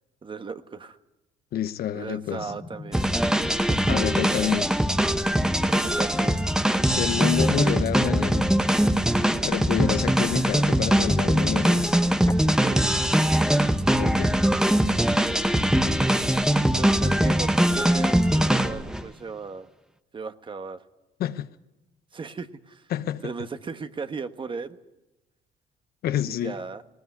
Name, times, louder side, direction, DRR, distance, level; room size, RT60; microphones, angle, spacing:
voice 1, 0.2-1.0 1.9-3.2 3.5-3.9 4.3-4.5 5.7-6.4 12.6-13.1 16.8-19.7 20.1-20.8 22.1-22.9 23.2-24.8 26.2-26.8, right 5 dB, 30° right, 1.3 m, -36 dB
voice 2, 1.5-2.5 3.9-4.7 6.8-8.5 9.4-12.0 14.0-14.4 21.2-21.5 22.9-23.3 26.0-26.6, left 11 dB, 65° left, 1.0 m, -28 dB
sound 1, 2.3-12.3, left 3 dB, 15° left, 1.3 m, -40 dB
sound 2, 2.9-19.0, right 1 dB, 5° right, 1.0 m, -22 dB
19.5 x 19.0 x 9.7 m
cardioid pair, 110°, 17 cm